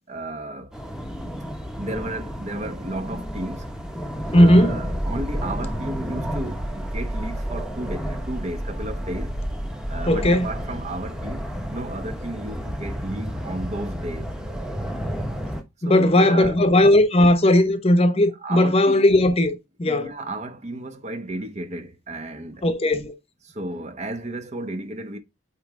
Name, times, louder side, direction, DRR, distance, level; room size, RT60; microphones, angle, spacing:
voice 1, 0.1-0.7 1.8-3.7 4.3-9.4 9.9-14.4 15.8-16.6 18.4-19.0 19.8-22.7 23.4-25.2, right 1 dB, 35° right, 1.0 m, -33 dB
sound 1, 0.7-15.6, equal, 5° right, 1.1 m, -31 dB
voice 2, 4.3-4.8 10.1-10.5 15.8-20.1 22.6-23.1, left 1 dB, 30° left, 0.9 m, -17 dB
8.7 x 3.2 x 3.6 m
head